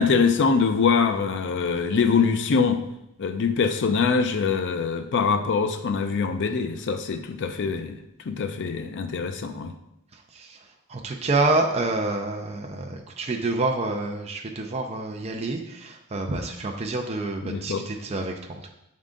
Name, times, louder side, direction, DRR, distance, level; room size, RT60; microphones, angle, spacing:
voice 1, 0.0-2.8 3.2-8.0 8.3-9.7 17.4-17.8, left 5 dB, 55° left, 7 dB, 0.5 m, -23 dB
voice 2, 10.9-18.7, right 2 dB, 30° right, 2 dB, 0.5 m, -27 dB
7.5 x 3.7 x 3.7 m, 0.82 s
head